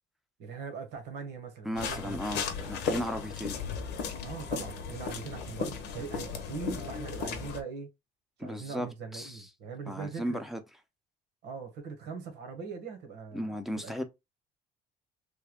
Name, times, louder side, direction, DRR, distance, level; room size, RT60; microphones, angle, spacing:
voice 1, 0.4-2.2 4.2-7.9 8.4-10.4 11.4-13.5 13.8-14.0, right 5 dB, 80° right, 1.2 m, -41 dB
voice 2, 1.6-3.6 8.4-9.5 9.9-10.6 13.3-14.0, equal, ahead, 0.6 m, -35 dB
sound 1, 1.8-7.6, left 5 dB, 85° left, 0.8 m, -35 dB
3.3 x 2.2 x 3.5 m
cardioid pair, 110°, 17 cm